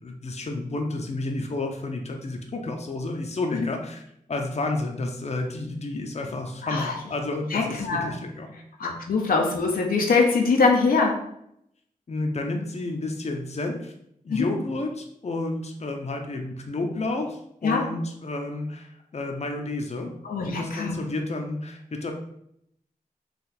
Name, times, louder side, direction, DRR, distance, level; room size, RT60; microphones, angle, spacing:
voice 1, 0.0-4.0 4.3-8.5 8.8-8.9 12.1-13.9 14.2-20.1 20.4-22.1, left 2 dB, 50° left, 3 dB, 0.7 m, -31 dB
voice 2, 6.6-7.0 7.5-8.1 8.8-11.2 14.3-14.5 17.6-17.8 20.2-21.0, left 4 dB, 85° left, 0 dB, 0.7 m, -23 dB
4.1 x 2.4 x 4.2 m, 0.74 s
cardioid pair, 55°, 15 cm